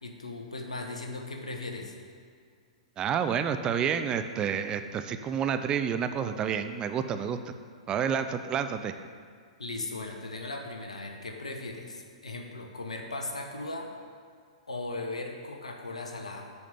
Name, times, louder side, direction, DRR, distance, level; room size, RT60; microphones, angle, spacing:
voice 1, 0.0-1.9 9.6-13.9 14.7-16.5, left 2 dB, 80° left, 3 dB, 1.1 m, -38 dB
voice 2, 3.0-7.4 7.9-8.9, right 7 dB, 25° right, 9 dB, 0.4 m, -29 dB
6.8 x 5.1 x 6.8 m, 2.2 s
figure-of-eight pair, 110°, 3 cm